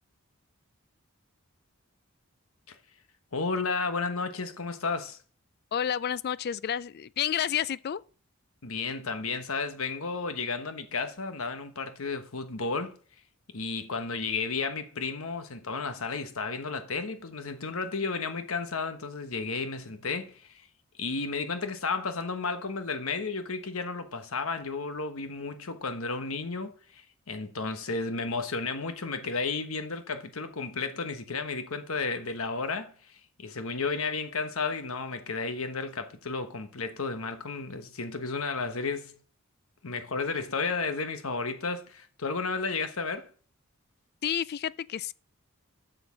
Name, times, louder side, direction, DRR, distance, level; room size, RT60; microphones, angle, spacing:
voice 1, 3.3-5.2 8.6-13.0 13.5-20.7 21.0-39.1 39.8-43.3, left 4 dB, 70° left, 1.2 m, -33 dB
voice 2, 5.7-8.0 44.2-45.1, left 9 dB, 45° left, 0.3 m, -30 dB
8.3 x 6.4 x 6.2 m
head